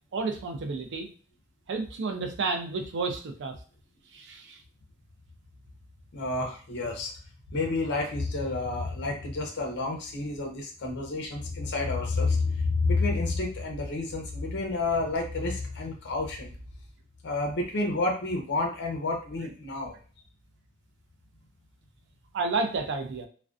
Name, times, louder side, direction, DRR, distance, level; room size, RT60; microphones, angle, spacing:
voice 1, 0.1-1.1 1.7-3.6 4.1-4.6 22.3-23.3, right 4 dB, 55° right, 5 dB, 0.4 m, -31 dB
voice 2, 6.1-7.1 7.5-16.5 17.2-20.0, left 3 dB, 55° left, 2 dB, 0.6 m, -29 dB
2.4 x 2.2 x 2.4 m, 0.41 s
head